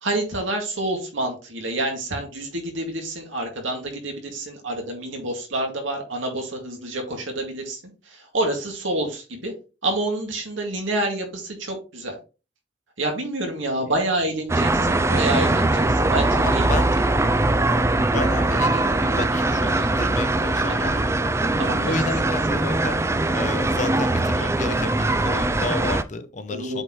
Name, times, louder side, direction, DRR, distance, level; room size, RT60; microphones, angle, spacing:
voice 1, 0.0-7.8 8.1-9.5 9.8-12.1 13.0-16.8 20.7-20.9 21.6-22.4 26.5-26.8, right 1 dB, 85° right, 2.2 m, -28 dB
sound 1, 14.5-26.0, right 2 dB, 15° right, 0.3 m, -21 dB
voice 2, 16.4-16.9 18.1-21.1 21.8-23.0 23.3-26.8, left 3 dB, 40° left, 0.7 m, -32 dB
7.8 x 4.3 x 3.1 m
head